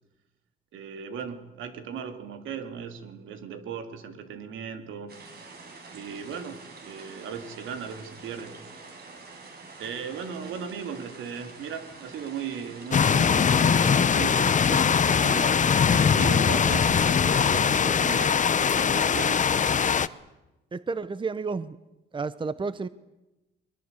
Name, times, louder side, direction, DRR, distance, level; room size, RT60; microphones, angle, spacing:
voice 1, 0.7-5.2 5.9-8.5 9.8-15.6 16.1-18.4 18.7-19.5, right 6 dB, 80° right, 7 dB, 3.0 m, -37 dB
sound 1, 5.1-16.7, right 3 dB, 55° right, 6.0 m, -46 dB
sound 2, 12.9-20.1, left 7 dB, 40° left, 0.9 m, -21 dB
voice 2, 20.7-21.8 22.1-22.9, right 4 dB, 25° right, 15 dB, 0.9 m, -31 dB
22.5 x 22.0 x 8.3 m, 1.0 s
cardioid pair, 90°, 20 cm